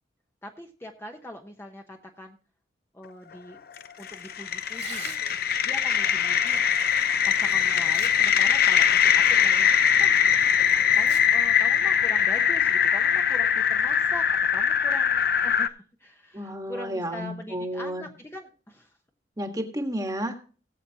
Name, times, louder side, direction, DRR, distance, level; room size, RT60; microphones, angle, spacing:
voice 1, 0.4-2.4 2.9-3.6 4.0-5.4 5.6-6.6 7.3-9.7 10.0-10.2 10.9-19.0, left 1 dB, 15° left, 3 dB, 0.9 m, -42 dB
sound 1, 3.8-15.7, left 8 dB, 55° left, 0.6 m, -22 dB
Tearing, 4.7-5.6 7.1-7.2 7.7-8.4 8.8-8.9 9.6-9.7 10.9-11.2 11.6-11.7 12.6-12.8, right 8 dB, 70° right, 2.2 m, -42 dB
voice 2, 16.3-18.1 19.4-20.4, equal, 20° right, 5 dB, 1.4 m, -31 dB
19.5 x 7.7 x 2.8 m, 0.39 s
head